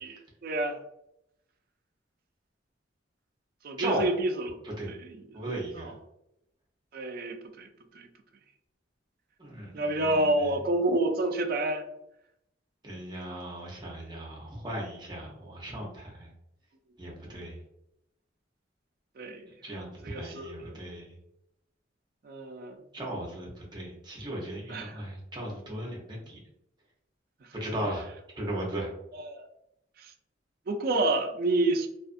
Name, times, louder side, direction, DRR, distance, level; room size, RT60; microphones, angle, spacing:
voice 1, 0.0-0.8 3.6-4.6 4.9-5.2 5.7-5.9 6.9-7.7 7.9-8.1 9.7-11.8 17.3-17.5 19.2-19.5 20.0-20.8 22.2-22.8 24.7-25.0 29.1-29.4 30.0-30.1 30.7-31.9, right 2 dB, 50° right, 5 dB, 0.4 m, -29 dB
voice 2, 5.3-5.9 9.4-10.5 12.8-16.3 17.0-17.5 19.6-21.1 22.9-26.4 27.5-28.1 28.3-28.9, right 1 dB, 25° right, -2 dB, 0.8 m, -36 dB
2.5 x 2.4 x 2.4 m, 0.82 s
head